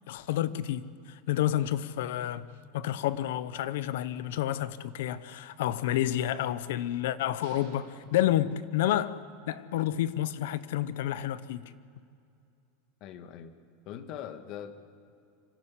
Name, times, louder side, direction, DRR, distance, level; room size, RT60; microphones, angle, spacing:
voice 1, 0.1-2.5 2.7-11.6, left 12 dB, 80° left, 0.8 m, -30 dB
sound 1, 7.4-9.2, right 6 dB, 75° right, 3.7 m, -54 dB
voice 2, 13.0-13.5 13.8-14.7, left 9 dB, 50° left, 1.5 m, -41 dB
25.0 x 12.5 x 8.4 m
supercardioid pair, 135°, 0 cm